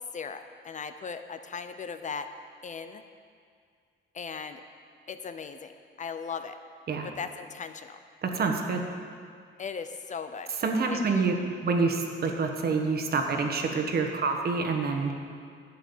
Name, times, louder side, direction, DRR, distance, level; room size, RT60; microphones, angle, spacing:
voice 1, 0.1-2.3 2.6-3.0 4.1-4.6 5.1-6.6 7.0-8.0 9.6-10.5 10.9-11.2, left 5 dB, 35° left, 9 dB, 0.6 m, -38 dB
voice 2, 8.2-8.8 10.6-11.3 11.6-15.1, right 4 dB, 50° right, 4 dB, 1.4 m, -27 dB
12.0 x 8.6 x 7.3 m, 2.2 s
cardioid pair, 140°, 21 cm